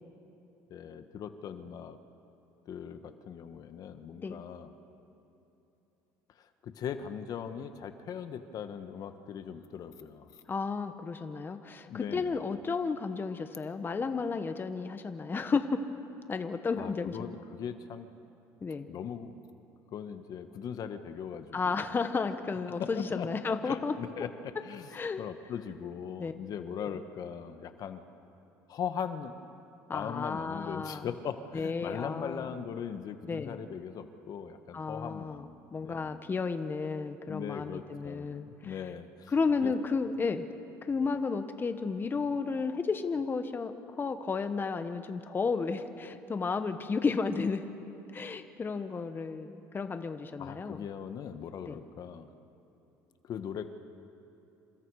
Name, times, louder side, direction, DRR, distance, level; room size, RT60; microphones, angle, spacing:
voice 1, 0.7-2.0 2.7-4.7 6.4-10.3 11.9-12.4 16.8-18.1 18.9-19.3 19.9-21.8 22.7-23.3 23.6-24.9 25.2-28.0 28.7-29.3 29.9-35.6 35.8-36.2 37.3-39.3 39.6-39.7 50.4-52.3 53.2-53.7, left 8 dB, 55° left, 9 dB, 1.4 m, -40 dB
voice 2, 10.5-15.8 16.3-17.4 18.6-18.9 21.5-23.9 24.9-25.2 26.2-26.3 26.8-27.0 29.9-31.1 31.5-32.5 33.3-33.6 34.7-38.8 39.3-40.5 40.8-47.6 48.1-50.8 51.7-51.8, left 4 dB, 25° left, 8 dB, 1.3 m, -33 dB
28.0 x 27.0 x 4.9 m, 2.9 s
supercardioid pair, 100°, 8 cm